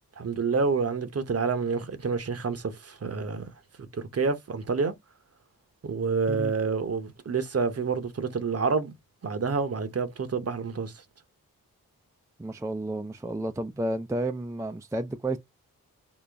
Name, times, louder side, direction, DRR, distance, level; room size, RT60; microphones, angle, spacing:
voice 1, 0.2-3.5 3.8-4.9 5.8-8.9 9.2-10.9, right 5 dB, 40° right, 0.8 m, -28 dB
voice 2, 12.4-15.4, right 1 dB, 10° right, 0.4 m, -31 dB
3.9 x 2.1 x 3.3 m
cardioid pair, 45°, 36 cm